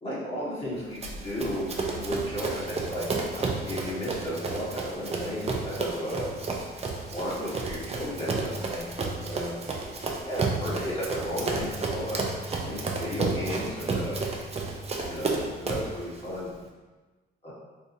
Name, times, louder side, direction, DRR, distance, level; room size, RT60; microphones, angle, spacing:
voice 1, 0.0-6.3 7.1-9.5 10.2-12.3 12.6-14.2 15.1-16.5 17.4-17.5, equal, 30° left, -8 dB, 1.3 m, -34 dB
sound 1, 0.6-5.3, right 4 dB, 70° right, 0.8 m, -48 dB
Run, 1.0-16.0, right 3 dB, 30° right, 0.5 m, -32 dB
3.5 x 2.7 x 2.7 m, 1.3 s
cardioid pair, 90°, 20 cm